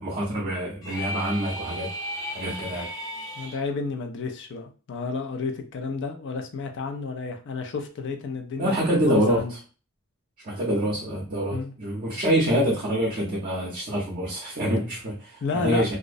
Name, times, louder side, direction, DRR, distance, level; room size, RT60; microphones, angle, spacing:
voice 1, 0.0-1.9 2.3-2.9 8.6-9.4 10.4-16.0, equal, 40° right, -4 dB, 0.6 m, -26 dB
sound 1, 0.8-3.6, equal, 15° left, 0.6 m, -35 dB
voice 2, 3.4-9.5 11.5-11.7 15.4-16.0, left 4 dB, 55° left, 5 dB, 0.4 m, -31 dB
2.5 x 2.0 x 2.4 m, 0.36 s
head